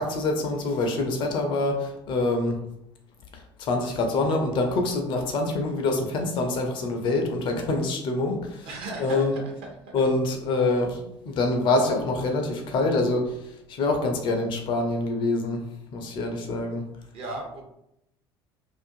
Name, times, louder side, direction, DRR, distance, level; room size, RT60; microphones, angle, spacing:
voice 1, 0.0-2.6 3.3-8.7 9.0-9.4 9.9-10.9 11.3-13.3 13.7-15.6 15.9-16.8, left 2 dB, 40° left, 4 dB, 0.5 m, -25 dB
voice 2, 8.6-9.9 10.5-10.8 17.1-17.6, right 2 dB, 45° right, 0 dB, 0.7 m, -37 dB
2.5 x 2.4 x 2.6 m, 0.81 s
figure-of-eight pair, 65°, 13 cm